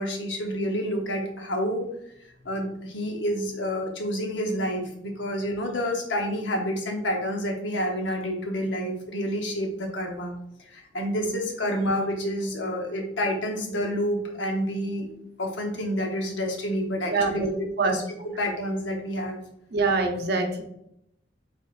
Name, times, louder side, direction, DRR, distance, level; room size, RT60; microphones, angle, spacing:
voice 1, 0.0-1.8 2.4-10.4 10.7-15.1 15.4-18.0 18.4-19.4, equal, 90° left, 2 dB, 0.9 m, -29 dB
voice 2, 17.1-17.5 17.8-18.0 19.7-20.6, right 3 dB, 60° right, 4 dB, 0.7 m, -24 dB
4.9 x 3.5 x 2.5 m, 0.76 s
head